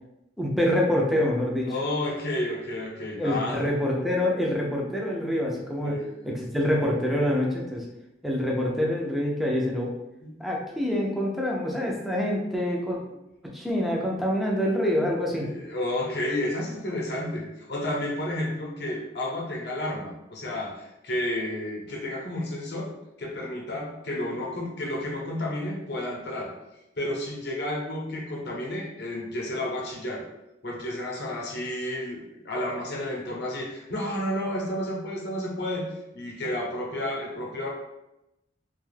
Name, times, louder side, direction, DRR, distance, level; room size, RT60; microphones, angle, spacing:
voice 1, 0.4-1.7 3.2-6.0 6.2-7.8 8.2-10.0 10.4-13.0 13.4-15.5, left 1 dB, ahead, -2 dB, 0.4 m, -26 dB
voice 2, 1.7-3.6 5.8-6.1 10.2-10.4 15.3-22.9 23.2-26.5 27.0-30.2 30.6-37.7, left 1 dB, 60° left, -2 dB, 0.7 m, -31 dB
2.4 x 2.2 x 3.2 m, 0.88 s
head